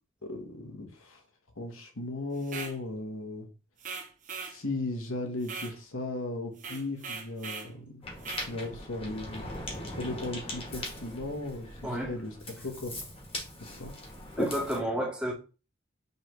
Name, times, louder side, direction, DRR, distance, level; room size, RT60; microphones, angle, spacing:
voice 1, 0.2-1.2 1.6-3.5 4.4-8.0 8.4-9.5 9.9-12.3 12.6-13.0 13.6-13.9, left 2 dB, 75° left, 1.1 m, -36 dB
sound 1, 2.4-2.8 3.8-4.6 5.4-5.8 6.6-7.7 8.2-8.5, right 5 dB, 40° right, 0.7 m, -40 dB
Ocean, 8.0-14.8, left 1 dB, 25° left, 1.2 m, -39 dB
voice 2, 11.8-12.2 14.4-15.3, equal, 5° right, 0.8 m, -31 dB
5.4 x 3.2 x 3.0 m
head